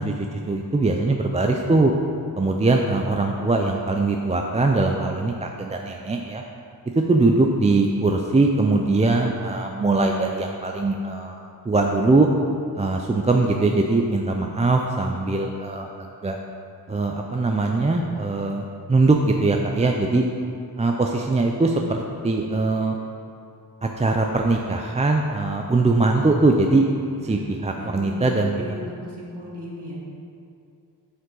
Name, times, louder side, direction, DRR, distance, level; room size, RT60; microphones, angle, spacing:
voice 1, 0.0-1.9 2.4-6.4 7.1-12.3 12.8-15.9 16.2-16.4 16.9-20.2 20.8-23.0 23.8-26.8 27.2-28.5, right 3 dB, 15° right, 2 dB, 0.4 m, -21 dB
voice 2, 27.1-27.5 27.8-30.0, equal, 80° right, -4 dB, 1.9 m, -36 dB
11.5 x 5.3 x 3.9 m, 2.5 s
wide cardioid pair, 95°, 40 cm